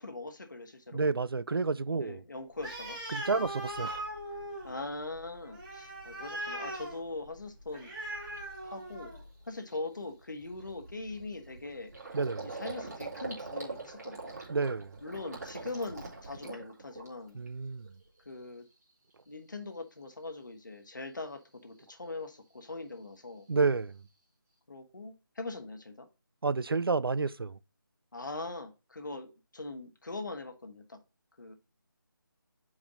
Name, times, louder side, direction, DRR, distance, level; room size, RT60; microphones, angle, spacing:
voice 1, 0.0-1.0 2.0-3.0 3.3-3.4 4.6-7.9 8.6-9.1 9.5-11.9 12.4-14.3 15.0-17.4 18.2-18.6 19.3-23.5 24.7-26.1 28.1-31.0 31.4-31.5, left 2 dB, 55° left, 1.5 m, -41 dB
voice 2, 0.9-2.2 3.1-4.0 12.1-12.5 14.5-14.9 17.3-17.9 23.5-24.0 26.4-27.6, right 4 dB, 80° right, 0.5 m, -30 dB
Animal, 2.5-9.3, right 1 dB, 20° right, 2.7 m, -40 dB
Gurgling, 7.8-7.9 8.4-8.6 9.0-9.2 9.4-17.5 17.8-18.4, right 3 dB, 45° right, 3.4 m, -43 dB
5.7 x 4.8 x 5.0 m
figure-of-eight pair, 175°, 12 cm